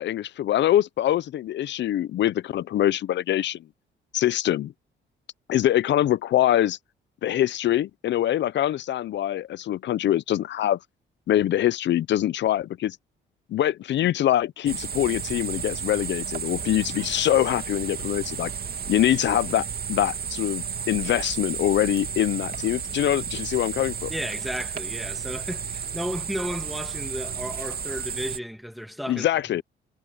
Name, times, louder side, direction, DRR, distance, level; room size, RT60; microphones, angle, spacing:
voice 1, 0.0-3.6 4.1-4.7 5.5-6.8 7.2-10.8 11.3-13.0 13.5-18.5 18.9-24.1 29.1-29.6, left 12 dB, 65° left, 0.6 m, -24 dB
sound 1, 14.7-28.4, right 7 dB, 50° right, 2.7 m, -33 dB
voice 2, 24.1-29.3, equal, ahead, 1.9 m, -33 dB
cardioid pair, 90°, 20 cm